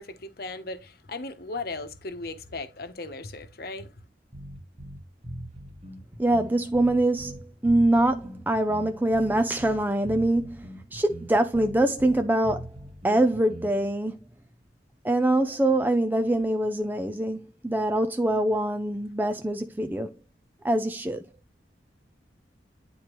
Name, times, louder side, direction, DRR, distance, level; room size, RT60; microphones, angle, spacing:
voice 1, 0.0-3.9, left 3 dB, 55° left, 1.0 m, -37 dB
sound 1, 4.3-13.9, right 1 dB, 40° right, 1.2 m, -41 dB
voice 2, 6.2-12.7 13.0-14.2 15.0-20.1 20.6-21.2, right 1 dB, 10° right, 0.5 m, -24 dB
10.0 x 4.3 x 3.0 m
head